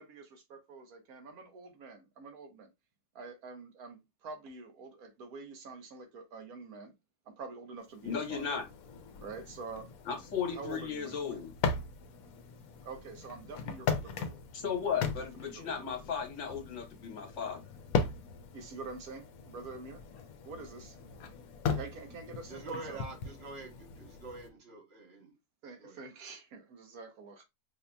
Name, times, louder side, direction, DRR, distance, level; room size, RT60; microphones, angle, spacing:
voice 1, 0.0-0.4 0.7-2.7 3.1-6.9 7.3-8.4 9.2-9.9 10.5-11.4 12.8-14.4 14.9-16.0 18.5-20.0 20.5-21.0 21.6-23.0 25.6-27.4, right 4 dB, 70° right, 1.2 m, -46 dB
sound 1, 7.9-24.5, left 5 dB, 70° left, 1.0 m, -39 dB
voice 2, 8.0-8.6 10.1-11.5 14.5-17.6, left 7 dB, 55° left, 1.2 m, -35 dB
voice 3, 22.5-25.3 25.8-26.0, right 3 dB, 45° right, 1.2 m, -45 dB
4.9 x 2.7 x 2.2 m
omnidirectional pair, 1.7 m